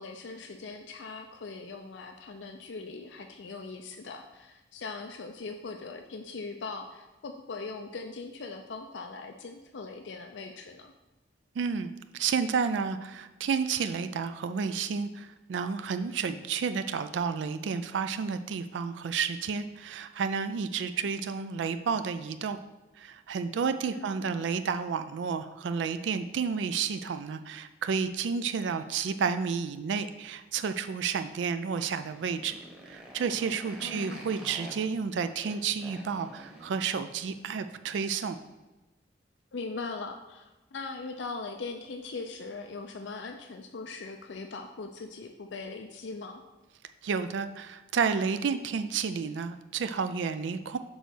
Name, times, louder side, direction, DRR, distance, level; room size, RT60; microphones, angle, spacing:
voice 1, 0.0-10.9 23.9-24.3 33.8-34.2 39.5-46.4, left 3 dB, 80° left, 5 dB, 0.5 m, -40 dB
voice 2, 11.6-22.6 23.0-32.6 32.8-38.4 47.0-50.8, right 6 dB, 80° right, 9 dB, 0.4 m, -31 dB
Motorcycle, 32.0-38.5, right 1 dB, 5° right, 0.9 m, -49 dB
6.2 x 4.0 x 6.3 m, 1.1 s
head